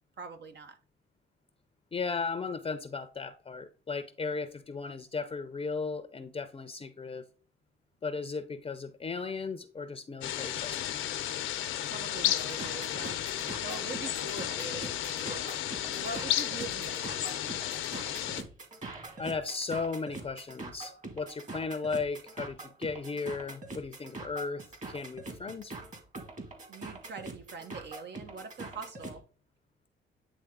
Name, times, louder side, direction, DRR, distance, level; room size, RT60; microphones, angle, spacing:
voice 1, 0.2-0.8 11.9-13.2 13.6-15.6 15.9-17.6 26.7-29.2, right 3 dB, 60° right, 1.0 m, -43 dB
voice 2, 1.9-7.2 8.0-11.0 19.2-25.7, left 4 dB, 30° left, 0.6 m, -36 dB
sound 1, 10.2-18.4, left 12 dB, 80° left, 0.7 m, -33 dB
sound 2, 12.2-29.2, right 2 dB, 40° right, 2.0 m, -44 dB
9.2 x 3.3 x 3.6 m
cardioid pair, 90°, 20 cm